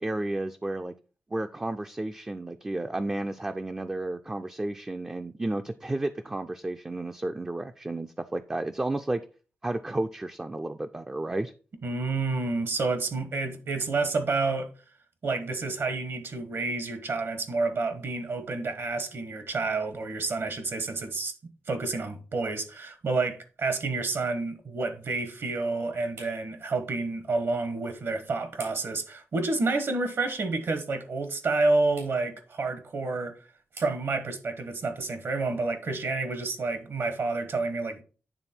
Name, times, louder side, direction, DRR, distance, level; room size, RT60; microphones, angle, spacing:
voice 1, 0.0-0.9 1.3-9.2 9.6-11.5, right 2 dB, 15° right, 0.4 m, -32 dB
voice 2, 11.8-14.7 15.2-21.3 21.7-33.3 33.7-38.0, right 3 dB, 60° right, 1.1 m, -29 dB
sound 1, 22.6-37.4, right 3 dB, 90° right, 3.2 m, -56 dB
9.0 x 3.4 x 4.3 m
wide cardioid pair, 95°, 5 cm